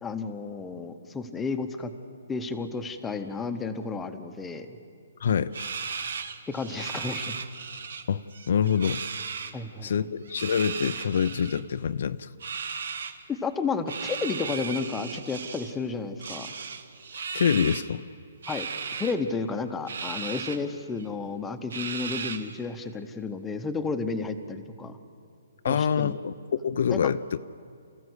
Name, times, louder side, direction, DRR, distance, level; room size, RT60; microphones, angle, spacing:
voice 1, 0.0-1.9 2.3-4.8 6.5-7.3 9.5-10.1 13.3-16.5 18.5-18.7 19.0-25.0 25.7-26.2 26.9-27.0, left 4 dB, 10° left, 6 dB, 1.0 m, -32 dB
voice 2, 5.2-6.0 8.1-9.0 9.8-12.3 17.3-18.0 25.6-27.2, left 7 dB, 60° left, 12 dB, 0.6 m, -26 dB
sound 1, 5.5-8.0 8.3-9.5 10.3-11.6 12.4-13.1 13.9-15.8 16.2-17.9 18.4-19.1 19.9-20.6 21.0-21.1 21.7-22.6, right 5 dB, 70° right, 1.6 m, -36 dB
29.0 x 14.5 x 8.2 m, 2.3 s
hypercardioid pair, 160°, 0 cm